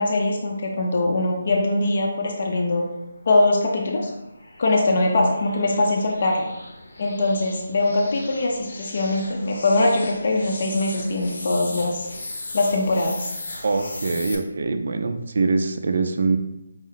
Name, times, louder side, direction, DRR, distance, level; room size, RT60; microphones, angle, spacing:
voice 1, 0.0-2.8 3.3-4.1 4.6-6.5 7.0-12.1 12.5-13.3, left 2 dB, 40° left, 0 dB, 0.5 m, -22 dB
sound 1, 2.8-14.4, left 2 dB, 65° left, 0.8 m, -38 dB
voice 2, 13.6-16.4, right 3 dB, 55° right, 6 dB, 0.4 m, -23 dB
5.2 x 2.1 x 3.9 m, 0.92 s
hypercardioid pair, 170°, 0 cm